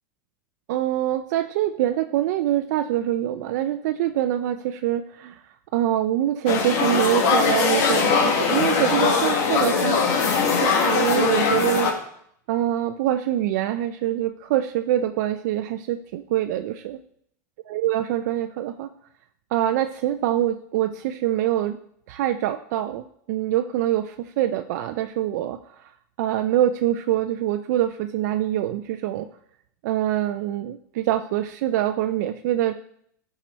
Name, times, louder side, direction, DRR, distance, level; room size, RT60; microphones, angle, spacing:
voice 1, 0.7-5.4 5.7-10.0 10.5-12.0 12.5-17.0 17.7-18.9 19.5-21.8 22.1-25.9 26.2-29.3 29.8-32.7, right 12 dB, 70° right, 7 dB, 0.5 m, -24 dB
sound 1, 6.5-11.9, left 5 dB, 60° left, 1.6 m, -21 dB
12.0 x 4.8 x 4.4 m, 0.69 s
supercardioid pair, 130°, 10 cm